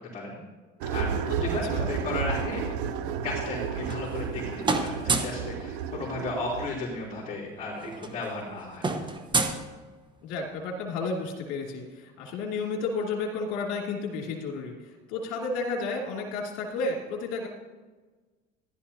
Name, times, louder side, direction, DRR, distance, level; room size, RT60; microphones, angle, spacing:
sound 1, 0.8-6.7, right 7 dB, 90° right, 0.8 m, -32 dB
voice 1, 0.9-2.6 3.2-8.9, left 2 dB, 35° left, -8 dB, 3.7 m, -34 dB
sound 2, 3.6-4.4 4.6-5.5 6.8-6.9 7.2-7.4 7.7-10.3, right 3 dB, 25° right, 1.1 m, -30 dB
voice 2, 10.2-14.8 15.1-17.5, left 3 dB, 80° left, -1 dB, 2.6 m, -32 dB
14.5 x 11.5 x 2.8 m, 1.3 s
supercardioid pair, 105°, 20 cm